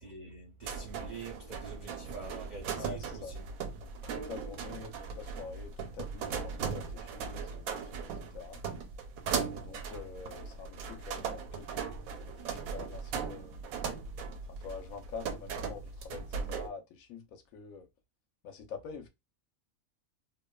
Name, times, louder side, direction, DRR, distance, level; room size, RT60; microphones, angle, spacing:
voice 1, 0.0-3.5 3.9-4.3, right 4 dB, 60° right, 0.4 m, -46 dB
sound 1, 0.6-16.7, right 6 dB, 90° right, 1.0 m, -38 dB
voice 2, 2.8-3.4 3.8-8.6 9.5-11.7 12.1-13.6 14.5-17.9 18.4-19.1, left 6 dB, 80° left, 1.0 m, -46 dB
2.8 x 2.1 x 2.2 m
omnidirectional pair, 1.4 m